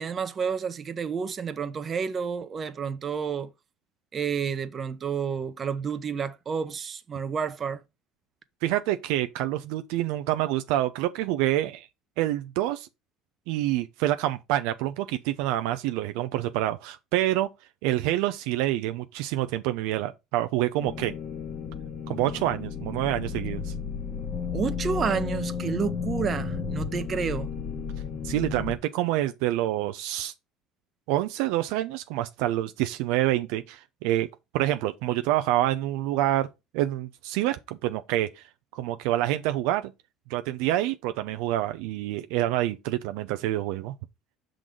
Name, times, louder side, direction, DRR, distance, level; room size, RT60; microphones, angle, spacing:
voice 1, 0.0-3.5 4.1-7.8 24.5-27.5, right 6 dB, 35° right, 0.9 m, -30 dB
voice 2, 8.6-11.9 12.2-12.9 13.5-17.5 17.8-21.1 22.1-23.7 28.2-30.3 31.1-34.3 34.5-36.5 36.7-38.4 38.7-39.9 40.3-43.9, right 14 dB, 75° right, 0.4 m, -27 dB
sound 1, 20.8-28.8, left 6 dB, 45° left, 1.6 m, -33 dB
5.9 x 3.8 x 5.1 m
supercardioid pair, 85°, 0 cm